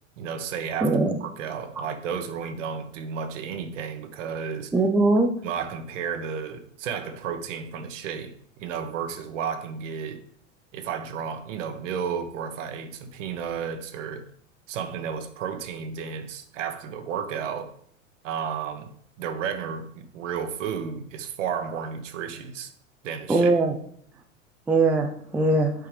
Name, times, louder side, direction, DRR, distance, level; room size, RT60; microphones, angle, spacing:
voice 1, 0.2-4.7 5.4-10.2 10.7-14.3 14.7-17.7 18.2-22.7 23.0-23.6, right 7 dB, 65° right, 1.0 m, -33 dB
voice 2, 0.8-1.1 4.7-5.3 23.3-23.7 24.7-25.7, right 2 dB, 5° right, 0.3 m, -20 dB
7.9 x 4.7 x 3.3 m
hypercardioid pair, 95°, 40 cm